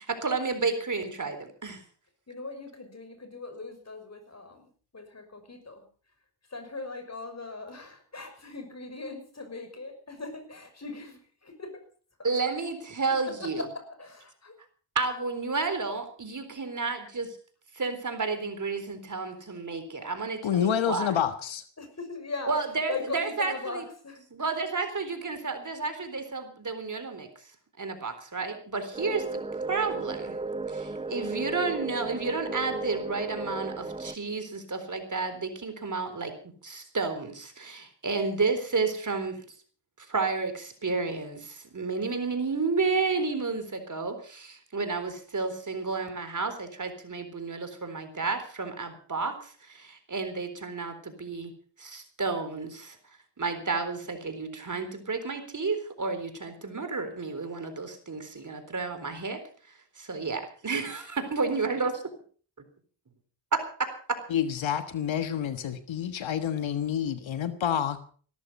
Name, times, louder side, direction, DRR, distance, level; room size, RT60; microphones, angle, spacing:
voice 1, 0.0-1.8 12.2-13.6 15.0-17.4 17.7-21.1 22.5-23.5 24.3-27.3 27.8-29.4 29.7-30.4 30.7-36.3 36.6-39.4 40.0-51.5 51.8-53.0 53.4-59.4 60.0-62.0 63.5-64.2, right 4 dB, 40° right, 9 dB, 3.9 m, -31 dB
voice 2, 2.3-5.9 6.5-11.8 13.3-14.5 21.8-22.5 22.9-24.2 24.5-24.6, left 3 dB, 35° left, 7 dB, 5.9 m, -40 dB
voice 3, 20.4-21.6 64.3-68.0, left 9 dB, 70° left, 10 dB, 1.5 m, -28 dB
sound 1, 28.9-34.2, right 3 dB, 15° right, 0.6 m, -34 dB
17.0 x 13.5 x 5.4 m, 0.44 s
cardioid pair, 65°, 47 cm